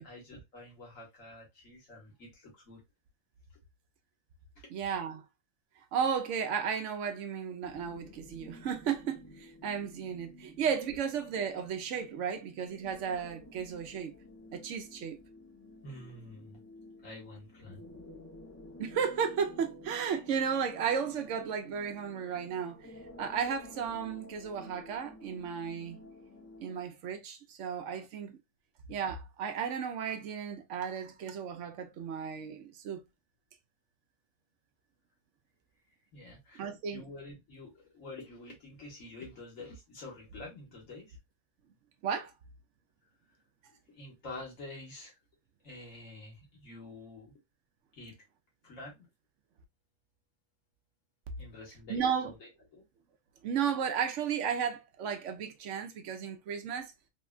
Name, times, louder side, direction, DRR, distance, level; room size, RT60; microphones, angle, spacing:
voice 1, 0.0-2.8 4.6-4.7 15.8-16.6 17.0-17.8 36.1-36.6 36.9-41.2 43.7-45.2 45.6-47.3 47.9-48.1 48.6-49.1 51.4-52.8, left 2 dB, 90° left, 1.7 m, -48 dB
voice 2, 4.7-5.2 5.9-14.1 14.5-15.2 18.8-26.1 26.6-28.4 28.9-33.0 36.5-37.0 42.0-42.3 51.9-52.3 53.4-56.9, right 7 dB, 75° right, 0.9 m, -34 dB
sound 1, 7.6-26.8, left 1 dB, 20° left, 0.5 m, -52 dB
3.5 x 2.2 x 2.3 m
omnidirectional pair, 1.3 m